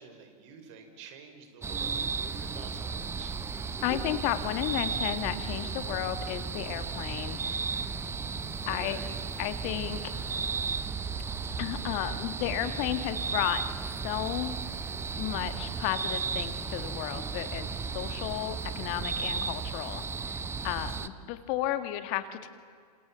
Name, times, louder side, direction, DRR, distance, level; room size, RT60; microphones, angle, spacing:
voice 1, 0.0-3.4 8.6-9.1, right 6 dB, 50° right, 6 dB, 5.3 m, -49 dB
sound 1, 1.6-21.1, right 5 dB, 10° right, 0.9 m, -34 dB
voice 2, 3.8-7.5 8.7-9.0 9.4-10.1 11.6-13.6 14.0-14.5 15.2-20.0 20.6-22.5, left 13 dB, 40° left, 10 dB, 1.8 m, -33 dB
28.0 x 27.5 x 7.5 m, 2.1 s
hypercardioid pair, 110°, 21 cm